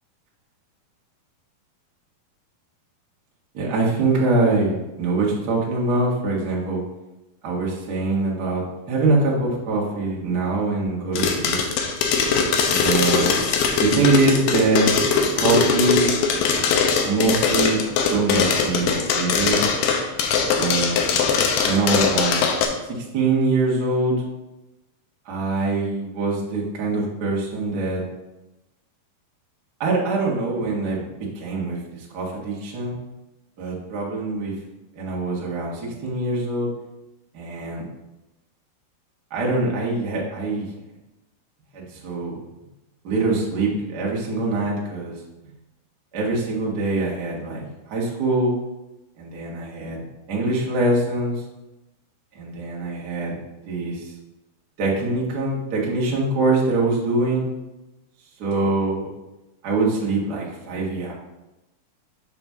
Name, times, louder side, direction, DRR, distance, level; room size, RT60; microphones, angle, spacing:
voice 1, 3.5-6.8 7.4-11.6 12.7-13.3 13.8-15.0 15.4-16.1 17.1-19.6 20.6-21.1 21.6-22.5 22.9-24.2 25.2-28.0 29.8-33.0 33.6-34.5 35.0-36.7 37.3-37.8 39.3-40.7 41.7-42.4 43.0-45.2 46.1-48.5 49.2-51.4 52.3-53.4 53.6-54.1 54.8-57.4 58.4-59.1 59.6-61.1, right 3 dB, 60° right, -4 dB, 1.0 m, -23 dB
sound 1, 11.2-22.7, left 5 dB, 85° left, 2.7 m, -21 dB
6.9 x 5.9 x 3.6 m, 0.99 s
omnidirectional pair, 4.3 m